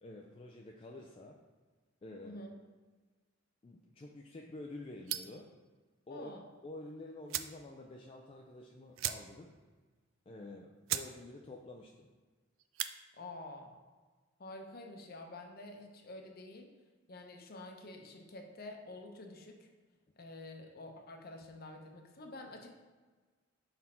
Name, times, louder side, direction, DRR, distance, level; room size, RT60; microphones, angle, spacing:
voice 1, 0.0-1.4 2.0-2.4 3.6-5.5 6.1-6.3 6.6-9.6 10.3-12.1, left 2 dB, 25° left, 0 dB, 0.4 m, -49 dB
voice 2, 2.2-2.6 6.1-6.4 13.1-13.8 14.4-16.7 17.1-19.7 20.2-22.7, left 2 dB, 50° left, 3 dB, 0.7 m, -48 dB
sound 1, 5.1-5.5 6.8-6.9 7.3-7.6 8.0-8.1 8.3-8.5 8.9-9.5 9.9-10.0 10.5-10.6 10.9-11.1 11.5-11.8 12.6-12.9, right 12 dB, 70° right, 0.3 m, -38 dB
5.3 x 4.1 x 4.3 m, 1.4 s
head